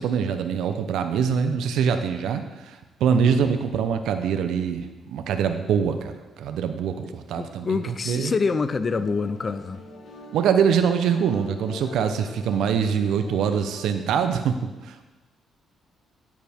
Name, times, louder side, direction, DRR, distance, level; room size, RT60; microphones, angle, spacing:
voice 1, 0.0-7.8 8.1-8.3 10.3-15.0, right 7 dB, 80° right, 8 dB, 0.7 m, -24 dB
voice 2, 7.4-9.8, left 4 dB, 35° left, 13 dB, 0.6 m, -26 dB
sound 1, 8.9-13.9, left 2 dB, 75° left, 3.7 m, -44 dB
9.4 x 8.9 x 3.6 m, 1.1 s
cardioid pair, 90°, 0 cm